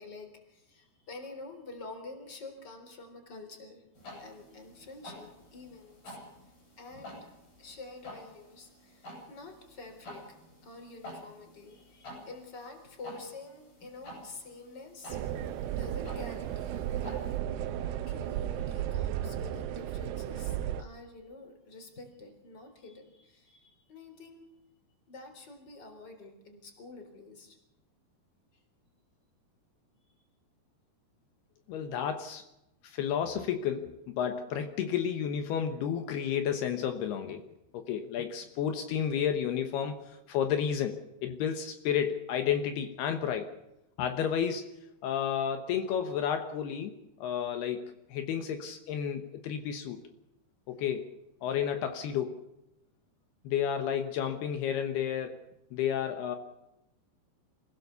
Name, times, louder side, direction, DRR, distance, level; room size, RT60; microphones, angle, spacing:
voice 1, 0.0-3.8 4.1-6.3 6.8-10.4 10.6-15.2 15.4-17.2 17.8-24.5 25.1-27.6 28.5-28.6, left 3 dB, 25° left, 5 dB, 4.0 m, -48 dB
sound 1, 3.9-17.4, equal, 60° left, 9.8 m, -50 dB
sound 2, 15.1-20.8, right 11 dB, 80° right, 2.9 m, -34 dB
voice 2, 31.7-32.4 32.8-37.4 37.7-43.5 44.0-44.7 45.0-46.9 47.2-50.0 50.7-51.1 51.4-52.4 53.4-55.4 55.7-56.4, left 8 dB, 75° left, 7 dB, 3.2 m, -31 dB
27.0 x 16.5 x 6.9 m, 0.89 s
omnidirectional pair, 4.7 m